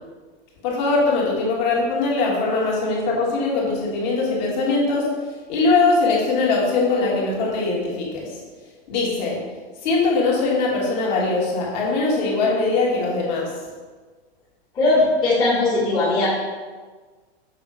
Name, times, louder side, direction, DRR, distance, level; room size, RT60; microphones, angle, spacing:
voice 1, 0.6-5.0 5.5-8.3 8.9-9.4 9.8-13.5, left 3 dB, 40° left, -4 dB, 1.8 m, -21 dB
voice 2, 14.7-16.3, left 2 dB, 15° left, -9 dB, 1.4 m, -19 dB
6.8 x 3.7 x 4.8 m, 1.4 s
supercardioid pair, 165°, 33 cm